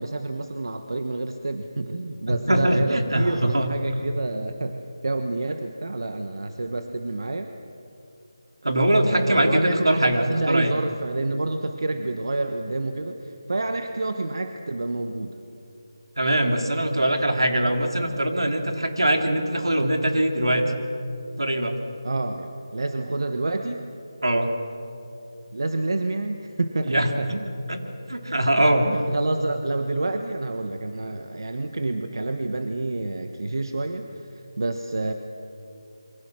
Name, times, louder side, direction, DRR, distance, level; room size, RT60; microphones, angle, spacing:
voice 1, 0.0-4.8 5.0-7.5 9.0-15.4 22.0-23.9 25.5-27.7 28.6-34.0 34.6-35.1, right 2 dB, 65° right, 6 dB, 1.3 m, -28 dB
voice 2, 2.3-3.7 8.6-10.8 16.2-20.7 21.4-21.8 24.2-24.5 26.9-27.1 27.7-27.8 28.1-28.9, right 1 dB, 85° right, 4 dB, 3.1 m, -22 dB
27.0 x 24.0 x 6.3 m, 2.7 s
figure-of-eight pair, 165°, 2 cm